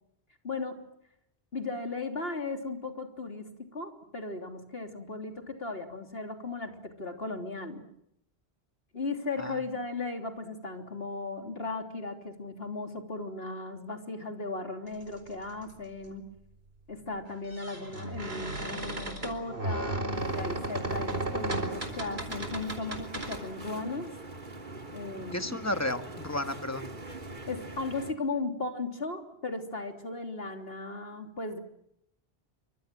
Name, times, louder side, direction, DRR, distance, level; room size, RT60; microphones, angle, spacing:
voice 1, 0.4-0.8 1.5-7.8 8.9-16.3 16.9-24.1 24.9-25.6 27.5-31.6, left 3 dB, 70° left, 4 dB, 3.6 m, -36 dB
sound 1, 15.6-15.7 17.3-23.4, right 2 dB, 75° right, 4.6 m, -34 dB
sound 2, 20.1-28.1, right 2 dB, 50° right, 2.6 m, -43 dB
voice 2, 25.3-26.9, left 1 dB, 15° left, 7 dB, 1.7 m, -32 dB
28.5 x 25.5 x 7.6 m, 0.79 s
omnidirectional pair, 1.1 m